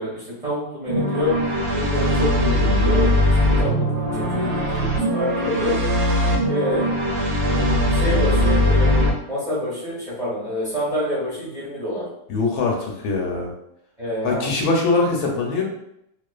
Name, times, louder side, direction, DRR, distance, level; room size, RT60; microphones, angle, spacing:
voice 1, 0.0-1.3 1.7-3.1 3.4-3.9 4.1-5.8 6.5-6.9 7.5-9.0 9.3-12.1 14.0-14.5, left 1 dB, 30° right, -10 dB, 0.9 m, -27 dB
sound 1, 0.9-9.1, left 1 dB, 80° right, 1.2 m, -20 dB
voice 2, 12.3-13.5 14.2-15.6, left 3 dB, 75° left, 0 dB, 1.1 m, -22 dB
2.4 x 2.4 x 2.2 m, 0.77 s
omnidirectional pair, 1.7 m